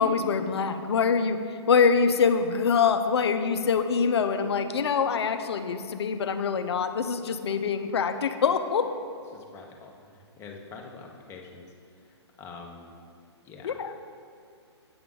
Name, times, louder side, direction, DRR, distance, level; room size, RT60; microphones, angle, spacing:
voice 1, 0.0-8.9 13.6-13.9, left 6 dB, 65° left, 9 dB, 0.6 m, -24 dB
voice 2, 9.3-11.7 12.0-12.9 13.4-13.8, left 4 dB, 15° left, 1 dB, 0.8 m, -45 dB
8.6 x 5.8 x 3.7 m, 2.3 s
figure-of-eight pair, 130°, 15 cm